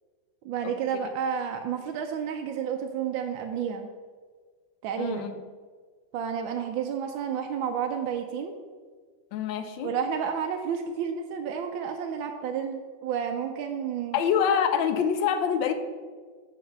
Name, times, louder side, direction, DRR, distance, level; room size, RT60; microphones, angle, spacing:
voice 1, 0.4-3.9 4.8-5.3 6.1-8.5 9.8-14.2, right 7 dB, 85° right, 4 dB, 1.3 m, -31 dB
voice 2, 5.0-5.4 9.3-9.9 14.1-15.7, left 7 dB, 80° left, 8 dB, 1.3 m, -25 dB
6.6 x 4.5 x 6.7 m, 1.6 s
omnidirectional pair, 2.0 m